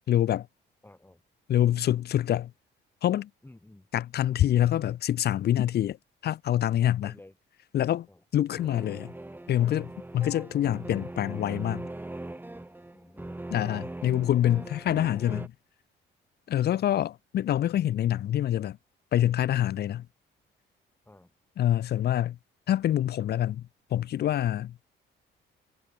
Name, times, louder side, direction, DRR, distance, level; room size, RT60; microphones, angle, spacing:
voice 1, 0.1-0.5 1.5-2.5 3.0-3.3 3.9-6.0 6.2-7.1 7.7-8.1 8.3-9.1 9.5-11.9 13.5-15.5 16.5-18.8 19.1-20.1 21.6-22.4 22.7-23.6 23.9-24.8, left 12 dB, 55° left, 0.5 m, -26 dB
voice 2, 0.8-1.2 3.4-3.9 6.8-7.4 8.1-8.2 12.9-13.4 21.1-21.3, left 1 dB, 10° left, 6.0 m, -53 dB
sound 1, 8.6-15.5, right 2 dB, 10° right, 1.3 m, -40 dB
cardioid pair, 90°, 20 cm